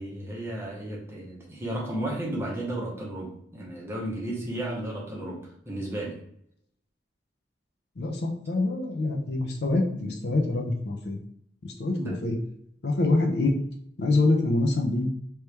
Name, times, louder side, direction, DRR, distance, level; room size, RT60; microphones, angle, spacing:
voice 1, 0.0-6.2 11.9-12.3, right 1 dB, 15° right, -4 dB, 0.9 m, -33 dB
voice 2, 8.0-11.2 11.6-12.4 12.8-13.6 14.0-15.1, left 2 dB, 55° left, 2 dB, 0.5 m, -25 dB
3.2 x 3.0 x 3.3 m, 0.69 s
head